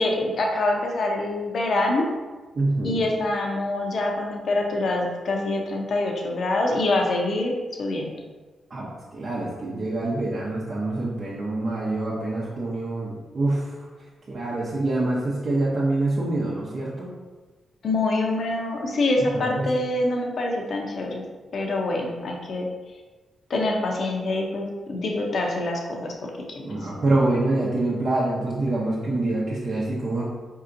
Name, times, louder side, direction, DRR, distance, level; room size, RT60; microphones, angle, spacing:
voice 1, 0.0-2.1 2.8-7.5 7.8-8.1 17.8-21.2 21.5-22.7 23.5-26.1 26.5-26.9, left 2 dB, 65° left, 1 dB, 0.7 m, -25 dB
voice 2, 2.5-3.0 8.7-13.7 14.3-17.1 19.2-19.7 26.6-30.2, right 2 dB, 55° right, -6 dB, 0.7 m, -26 dB
4.6 x 2.8 x 2.5 m, 1.3 s
supercardioid pair, 55°, 0 cm